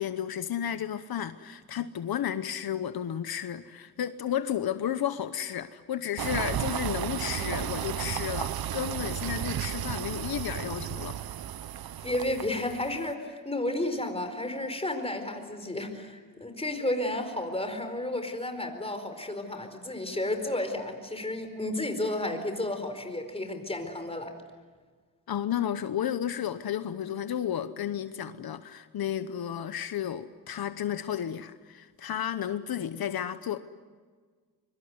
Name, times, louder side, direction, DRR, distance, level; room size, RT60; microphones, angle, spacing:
voice 1, 0.0-11.2 25.3-33.6, left 10 dB, 80° left, 1.0 m, -32 dB
sound 1, 6.2-13.1, right 11 dB, 75° right, 0.8 m, -33 dB
voice 2, 12.0-24.4, left 1 dB, 15° left, 4.5 m, -32 dB
24.5 x 24.0 x 9.5 m
cardioid pair, 85°, 37 cm